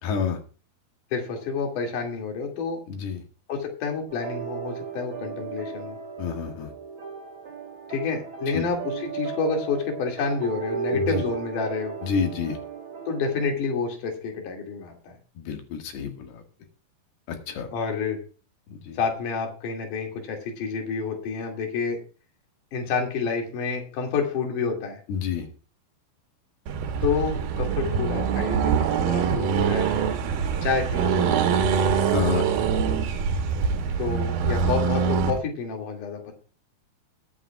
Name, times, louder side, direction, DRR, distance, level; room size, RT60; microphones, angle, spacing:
voice 1, 0.0-0.4 2.9-3.2 6.2-6.7 8.5-8.7 10.9-11.2 12.0-12.6 15.4-16.4 17.3-17.7 18.7-19.0 25.1-25.5 32.1-32.5, left 7 dB, 85° left, 4 dB, 3.9 m, -29 dB
voice 2, 1.1-2.8 3.5-6.0 7.9-12.0 13.1-15.1 17.7-18.2 19.0-22.0 22.7-25.0 27.0-29.9 30.6-31.8 34.0-36.3, left 5 dB, 60° left, 1 dB, 3.8 m, -29 dB
sound 1, 4.1-13.5, right 7 dB, 40° right, 2.4 m, -35 dB
Accelerating revving vroom, 26.7-35.4, right 6 dB, 75° right, 2.9 m, -24 dB
22.0 x 8.9 x 2.4 m, 0.36 s
omnidirectional pair, 4.4 m